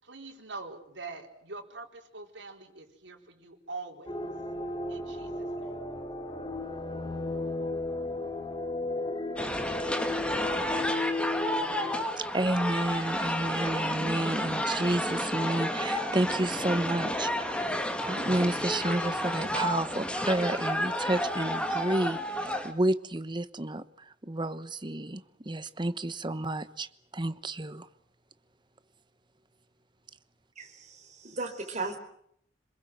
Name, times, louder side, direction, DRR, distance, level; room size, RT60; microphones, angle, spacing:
voice 1, 0.0-4.2 4.9-5.9, right 3 dB, 75° right, 4.2 m, -44 dB
sound 1, 4.1-12.1, left 2 dB, 25° left, 2.8 m, -34 dB
sound 2, 9.4-22.7, equal, 5° left, 2.1 m, -31 dB
voice 2, 12.2-17.7 18.0-26.9 27.1-27.9, right 1 dB, 25° right, 1.1 m, -31 dB
voice 3, 30.6-32.0, right 3 dB, 40° right, 4.5 m, -36 dB
27.5 x 21.5 x 7.9 m
head